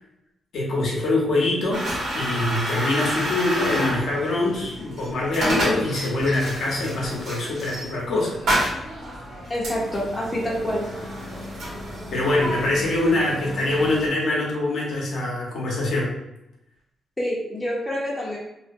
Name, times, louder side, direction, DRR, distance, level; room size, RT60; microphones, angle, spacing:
voice 1, 0.5-1.8 2.1-8.4 12.1-16.1, left 2 dB, 70° left, -4 dB, 0.7 m, -24 dB
sound 1, 1.7-14.1, equal, 75° right, 1.0 m, -30 dB
voice 2, 9.5-10.9 17.2-18.4, equal, 15° left, -4 dB, 0.7 m, -27 dB
2.4 x 2.2 x 2.5 m, 0.88 s
cardioid pair, 100°, 0 cm